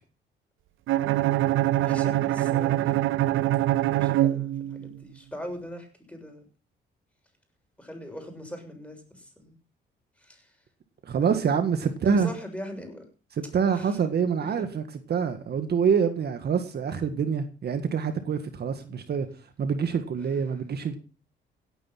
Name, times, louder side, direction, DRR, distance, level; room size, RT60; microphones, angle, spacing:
Bowed string instrument, 0.9-5.0, right 14 dB, 85° right, 0.6 m, -24 dB
voice 1, 1.8-3.0 3.9-6.4 7.8-9.6 10.2-10.5 11.2-11.4 12.1-13.1 13.8-14.0 14.6-14.7, equal, 5° left, 4 dB, 6.9 m, -40 dB
voice 2, 11.0-12.3 13.3-19.3 19.6-21.0, right 6 dB, 55° right, 9 dB, 1.7 m, -26 dB
17.5 x 9.5 x 5.9 m, 0.38 s
cardioid pair, 90°, 20 cm